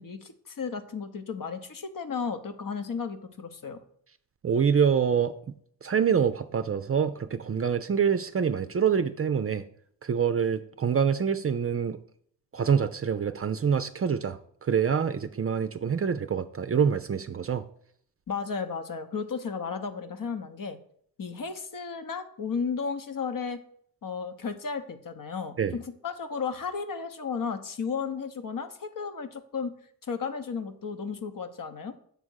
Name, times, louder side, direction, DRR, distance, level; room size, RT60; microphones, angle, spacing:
voice 1, 0.0-3.8 18.3-20.8 21.2-23.6 24.0-29.8 30.0-32.0, left 5 dB, 50° left, 8 dB, 1.0 m, -34 dB
voice 2, 4.4-5.3 5.8-9.6 10.0-12.0 12.5-17.6 25.6-25.8, right 7 dB, 30° right, 11 dB, 0.5 m, -26 dB
6.9 x 3.6 x 6.3 m, 0.63 s
supercardioid pair, 45°, 44 cm